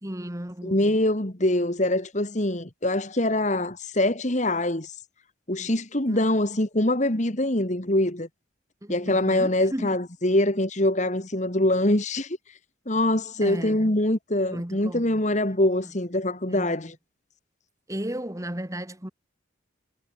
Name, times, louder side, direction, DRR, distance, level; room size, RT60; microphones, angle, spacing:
voice 1, 0.0-1.0 6.1-6.2 8.8-10.0 13.4-13.9 14.5-15.2 16.5-16.7 17.9-19.1, equal, 15° right, 1.9 m, -34 dB
voice 2, 0.6-4.9 5.5-8.3 8.9-12.4 12.9-17.0, left 1 dB, 35° left, 2.2 m, -24 dB
head